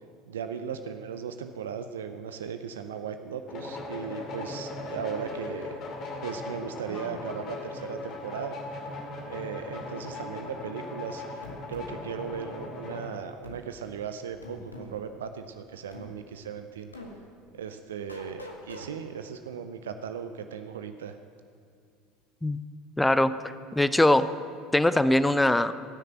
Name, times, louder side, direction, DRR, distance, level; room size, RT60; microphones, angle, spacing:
voice 1, 0.2-5.8 6.2-8.6 9.3-16.9 17.5-21.2, right 7 dB, 75° right, 8 dB, 0.5 m, -37 dB
sound 1, 3.5-13.1, left 2 dB, 50° left, 2.3 m, -38 dB
sound 2, 11.4-11.9 13.4-13.6 14.4-14.9 15.9-16.1 16.9-17.1 18.1-18.9, left 2 dB, 90° left, 1.2 m, -43 dB
voice 2, 23.0-23.4 23.7-24.3 24.7-25.7, left 1 dB, 10° left, 13 dB, 0.6 m, -21 dB
16.0 x 6.6 x 7.9 m, 2.4 s
figure-of-eight pair, 65°, 0 cm